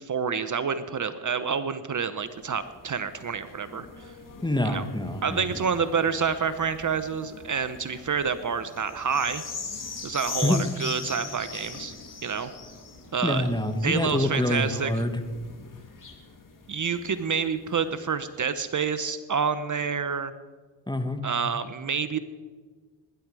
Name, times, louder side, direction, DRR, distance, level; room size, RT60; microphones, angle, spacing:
voice 1, 0.0-4.1 4.6-4.8 5.2-9.4 10.0-11.9 12.2-12.5 13.1-13.5 13.8-14.9 16.7-20.3 21.2-22.2, right 6 dB, 40° right, 12 dB, 0.9 m, -28 dB
sound 1, 2.2-18.1 18.7-18.8, left 4 dB, 45° left, 2.5 m, -42 dB
voice 2, 4.4-5.5 10.4-10.7 13.2-15.2 20.9-21.2, left 1 dB, 10° left, 8 dB, 1.4 m, -26 dB
20.0 x 10.5 x 4.8 m, 1.5 s
supercardioid pair, 60°, 45 cm